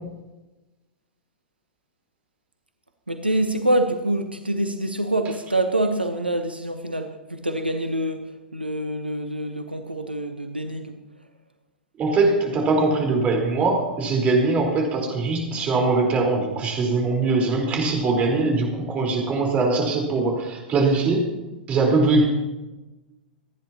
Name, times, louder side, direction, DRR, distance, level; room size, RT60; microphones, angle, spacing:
voice 1, 3.1-8.2 8.5-11.0, right 1 dB, 90° right, 7 dB, 1.0 m, -25 dB
voice 2, 12.0-21.2 21.7-22.2, right 3 dB, 25° right, 0 dB, 4.2 m, -21 dB
27.0 x 10.5 x 3.0 m, 1.0 s
figure-of-eight pair, 100°, 5 cm